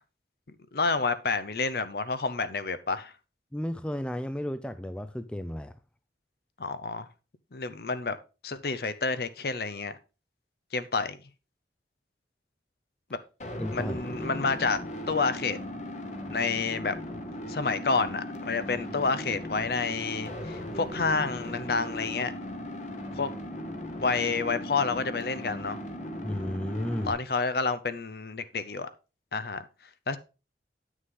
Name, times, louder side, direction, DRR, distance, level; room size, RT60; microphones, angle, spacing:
voice 1, 0.7-3.1 6.6-7.1 7.5-8.2 8.4-10.0 10.7-11.2 13.1-13.2 13.7-14.8 15.1-15.6 16.3-17.0 17.5-22.3 23.1-23.3 24.0-25.8 27.1-28.9 29.3-29.7 30.1-30.2, left 4 dB, 60° left, 0.7 m, -29 dB
voice 2, 3.5-5.7 13.6-14.0 26.2-27.1, left 1 dB, 5° left, 0.4 m, -33 dB
sound 1, 13.4-27.1, left 1 dB, 40° left, 1.2 m, -37 dB
9.5 x 6.3 x 3.7 m
head